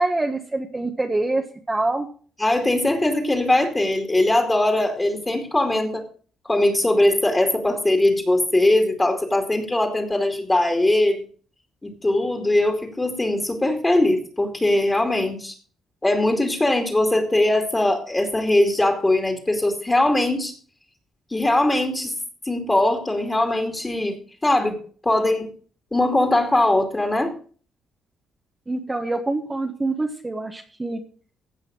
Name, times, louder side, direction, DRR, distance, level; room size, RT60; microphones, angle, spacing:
voice 1, 0.0-2.1 28.7-31.0, right 2 dB, 20° right, 2 dB, 1.4 m, -25 dB
voice 2, 2.4-6.0 6.4-11.2 11.8-15.6 16.0-20.5 21.3-22.1 22.4-24.8 25.0-25.5 25.9-27.3, left 1 dB, 15° left, 4 dB, 2.5 m, -21 dB
16.0 x 5.6 x 6.2 m, 0.42 s
cardioid pair, 90°, 0 cm